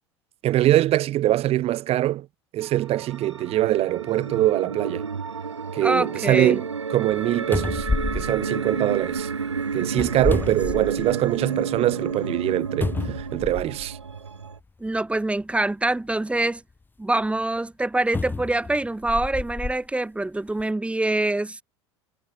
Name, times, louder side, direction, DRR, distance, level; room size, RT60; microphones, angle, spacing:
voice 1, 0.4-2.3 2.5-5.1 5.7-7.9 8.1-9.3 9.7-14.0, right 14 dB, 45° right, 3.0 m, -23 dB
sound 1, 2.6-14.6, right 5 dB, 85° right, 2.2 m, -31 dB
voice 2, 5.8-6.6 14.8-16.6 17.0-21.6, right 2 dB, 10° right, 2.6 m, -25 dB
sound 2, 7.1-7.2 7.5-9.2 9.9-11.3 11.8-11.9 12.8-13.9 14.9-15.0 18.1-19.8 20.5-20.6, left 3 dB, 15° left, 1.5 m, -29 dB
figure-of-eight pair, 75°, 14 cm